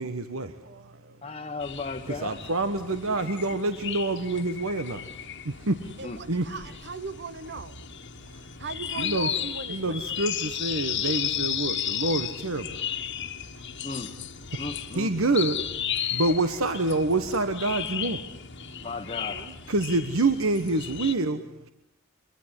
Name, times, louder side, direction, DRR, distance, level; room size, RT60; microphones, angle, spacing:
voice 1, 0.0-0.6 2.1-5.1 5.4-5.9 6.3-6.5 8.3-8.4 9.0-9.3 9.7-12.8 14.5-14.6 14.9-15.6 16.1-18.2 19.7-21.7, right 2 dB, 65° right, 1.3 m, -27 dB
voice 2, 0.6-1.6 2.0-2.4 2.7-2.9 6.0-7.8 8.6-10.1 13.5-13.7 19.3-19.6, right 4 dB, 50° right, 1.0 m, -39 dB
voice 3, 1.2-2.4 6.0-6.2 13.8-14.1 14.6-15.4 18.8-19.5, left 3 dB, 25° left, 1.2 m, -35 dB
sound 1, 1.6-21.1, left 9 dB, 55° left, 1.6 m, -34 dB
24.0 x 24.0 x 9.9 m
head